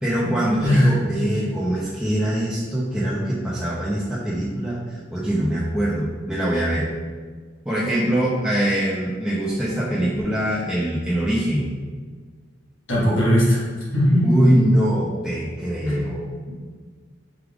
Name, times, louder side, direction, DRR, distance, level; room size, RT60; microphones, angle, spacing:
voice 1, 0.0-6.9 7.7-11.7 14.2-16.5, right 1 dB, 5° right, -8 dB, 0.5 m, -23 dB
voice 2, 0.6-1.0 12.9-13.6 13.9-14.3 15.9-16.0 16.5-16.6, equal, 85° left, -6 dB, 1.4 m, -18 dB
4.8 x 2.4 x 3.4 m, 1.5 s
head